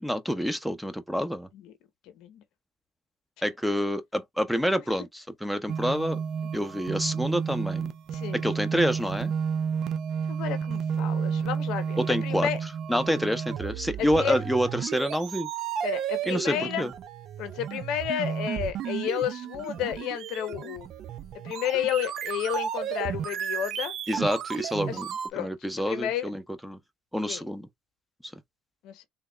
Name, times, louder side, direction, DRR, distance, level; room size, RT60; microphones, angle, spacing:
voice 1, 0.0-1.5 3.4-6.2 6.5-7.9 8.3-9.3 12.0-12.5 12.9-15.5 16.3-16.9 24.1-25.1 25.4-26.8 27.1-27.7, equal, ahead, 0.7 m, -28 dB
sound 1, 5.7-25.3, right 7 dB, 60° right, 0.5 m, -32 dB
voice 2, 8.1-8.4 10.3-12.6 14.0-14.4 15.8-16.9 17.4-20.9 21.4-23.9 24.9-25.0 25.3-25.5 25.8-26.3 27.3-27.4 28.8-29.0, left 10 dB, 75° left, 0.8 m, -31 dB
3.4 x 2.3 x 3.1 m
supercardioid pair, 75°, 0 cm